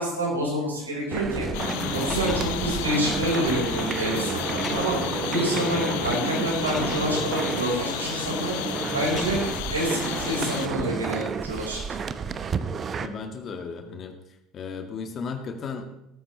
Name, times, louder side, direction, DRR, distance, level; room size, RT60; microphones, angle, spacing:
voice 1, 0.0-1.5 1.9-4.9 5.3-8.5 8.9-9.4 9.7-12.0, right 1 dB, 85° right, -3 dB, 4.9 m, -27 dB
sound 1, 1.1-13.1, right 6 dB, 35° right, 0.9 m, -31 dB
sound 2, 1.5-10.7, left 14 dB, 60° left, 0.6 m, -32 dB
Car, 1.8-2.6 3.7-3.8 4.5-5.1 6.4-7.1 8.9-9.6, left 2 dB, 20° left, 5.1 m, -35 dB
voice 2, 13.0-14.1 14.5-15.8, left 5 dB, 40° left, 5 dB, 1.9 m, -35 dB
17.5 x 14.0 x 3.3 m, 0.82 s
figure-of-eight pair, 65°, 0 cm